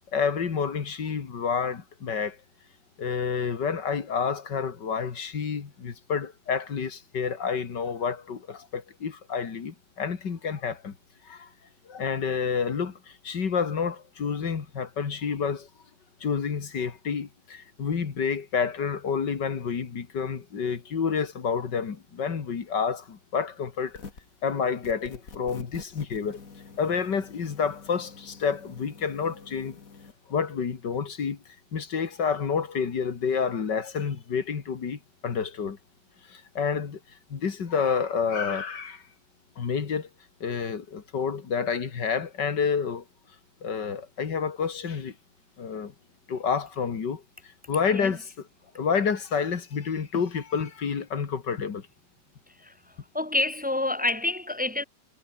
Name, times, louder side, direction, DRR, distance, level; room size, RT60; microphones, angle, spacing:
voice 1, 0.1-2.4 3.0-10.9 11.3-11.5 11.9-15.7 16.2-24.0 24.4-26.4 26.8-29.8 30.3-31.4 31.7-35.8 36.3-37.0 37.3-39.0 39.6-40.1 40.4-43.0 43.6-45.1 45.6-45.9 46.3-48.3 48.7-51.9, left 6 dB, 90° left, 2.8 m, -29 dB
sound 1, 23.9-24.4 24.8-30.1, left 4 dB, 50° left, 2.9 m, -47 dB
voice 2, 53.1-54.8, left 2 dB, 5° right, 1.7 m, -27 dB
omnidirectional pair, 1.8 m